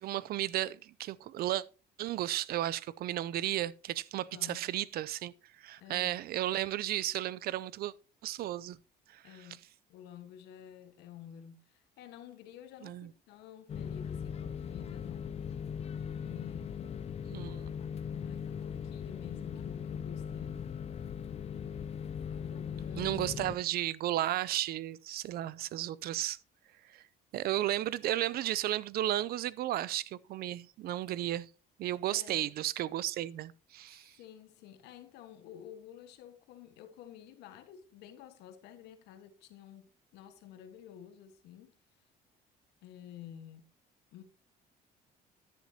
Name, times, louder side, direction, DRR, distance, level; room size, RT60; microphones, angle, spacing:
voice 1, 0.0-1.6 2.0-5.3 5.6-7.9 8.2-8.8 9.1-9.2 12.8-13.1 17.3-17.7 23.0-26.4 26.9-27.0 27.3-31.5 31.8-34.1, right 14 dB, 65° right, 0.5 m, -34 dB
voice 2, 4.3-4.9 5.8-6.2 9.2-9.6 9.9-15.4 16.2-16.9 18.1-20.7 22.3-23.4 28.2-28.4 32.1-32.5 34.2-41.7 42.8-43.6 44.1-44.2, left 10 dB, 90° left, 1.4 m, -51 dB
sound 1, 13.7-23.6, left 7 dB, 40° left, 0.5 m, -39 dB
10.5 x 10.0 x 2.8 m
cardioid pair, 110°, 17 cm